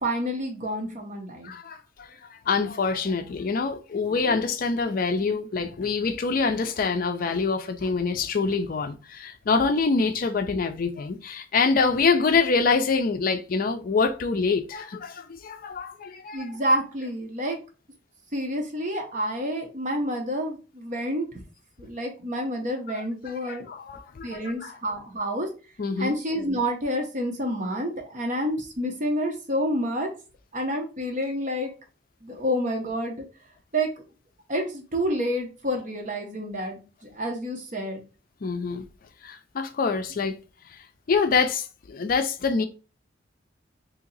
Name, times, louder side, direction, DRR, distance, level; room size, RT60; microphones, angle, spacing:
voice 1, 0.0-1.5 16.3-17.6 18.3-21.4 21.8-23.7 24.2-25.5 26.0-30.1 30.5-31.7 32.2-33.2 33.7-33.9 34.5-36.8 37.1-38.0, equal, 45° right, 0.9 m, -28 dB
voice 2, 1.4-16.5 22.9-23.0 23.5-24.7 25.8-26.2 38.4-38.8 39.2-40.4 41.1-42.7, left 4 dB, 50° left, 0.4 m, -25 dB
2.8 x 2.8 x 3.9 m
head